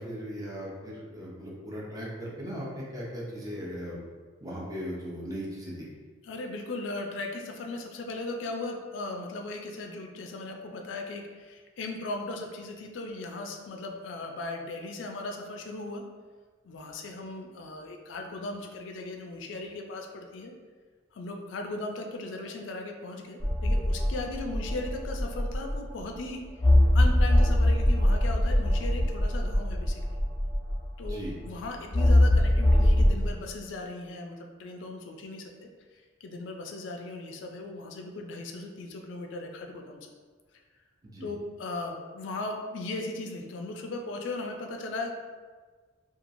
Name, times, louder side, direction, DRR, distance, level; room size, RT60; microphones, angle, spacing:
voice 1, 0.0-4.0 4.4-5.9 31.0-31.3 41.0-41.3, equal, 20° right, -5 dB, 0.6 m, -38 dB
voice 2, 6.2-16.0 16.6-20.5 21.1-26.4 26.9-30.2 31.0-35.7 36.2-40.0 41.2-45.1, left 2 dB, 70° left, 3 dB, 0.4 m, -37 dB
sound 1, 23.4-26.0 26.6-31.3 31.9-33.1, left 1 dB, 20° left, 0.7 m, -23 dB
2.9 x 2.3 x 2.5 m, 1.5 s
head